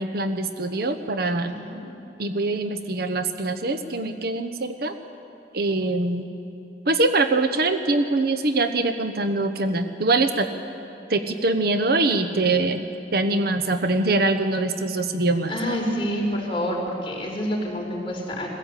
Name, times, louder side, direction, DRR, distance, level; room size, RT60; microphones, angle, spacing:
voice 1, 0.0-1.6 2.2-4.9 5.5-6.3 6.9-10.5 11.1-15.8, right 2 dB, 60° right, 8 dB, 1.1 m, -23 dB
voice 2, 1.5-1.8 15.5-18.5, equal, 30° left, -1 dB, 4.2 m, -27 dB
22.0 x 15.5 x 8.3 m, 2.7 s
head